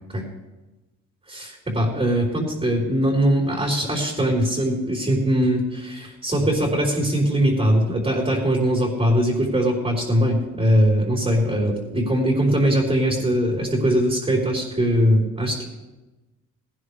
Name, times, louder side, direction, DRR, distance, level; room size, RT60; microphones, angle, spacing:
voice 1, 1.3-15.7, equal, 20° right, -1 dB, 4.5 m, -21 dB
19.0 x 18.0 x 3.4 m, 1.1 s
cardioid pair, 90°, 30 cm